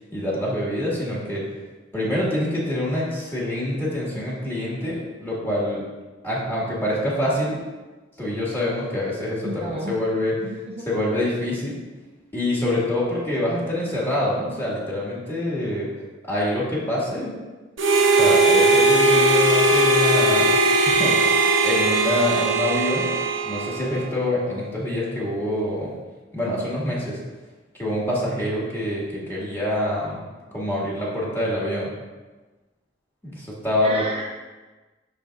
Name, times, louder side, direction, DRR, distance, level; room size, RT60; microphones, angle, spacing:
voice 1, 0.1-1.4 1.9-5.8 6.2-7.6 8.2-10.3 10.9-11.8 12.3-15.9 16.3-17.3 18.2-20.5 20.8-23.1 23.4-25.9 26.3-27.2 27.8-30.2 30.5-31.9 33.2-34.0, left 1 dB, 10° left, -7 dB, 1.9 m, -26 dB
voice 2, 9.4-10.0 10.4-10.9 11.1-11.2 33.8-34.3, right 1 dB, 30° right, -1 dB, 0.6 m, -32 dB
Harmonica, 17.8-24.1, right 2 dB, 80° right, 0.9 m, -19 dB
12.5 x 4.3 x 2.5 m, 1.2 s
head